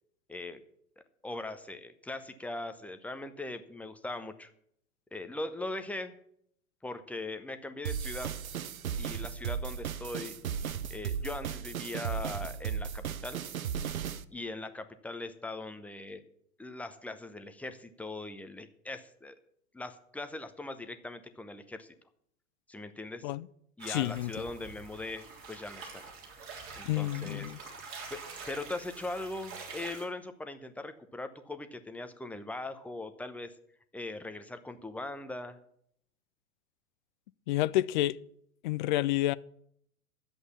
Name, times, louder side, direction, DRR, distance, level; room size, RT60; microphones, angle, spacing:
voice 1, 0.3-0.6 1.2-4.5 5.1-6.2 6.8-8.4 9.0-10.3 10.9-13.4 14.3-16.2 16.6-19.3 19.7-21.9 22.7-23.3 23.8-26.1 26.7-27.7 28.1-28.2 28.5-33.5 33.9-35.6, left 2 dB, 5° left, 0.8 m, -40 dB
sound 1, 7.8-14.2, right 8 dB, 75° right, 0.9 m, -36 dB
sound 2, 23.8-30.1, right 4 dB, 30° right, 3.4 m, -46 dB
voice 2, 23.9-24.5 26.9-27.6 37.5-38.2 38.6-39.3, left 15 dB, 35° left, 0.4 m, -29 dB
11.0 x 8.0 x 8.3 m
figure-of-eight pair, 100°, 43 cm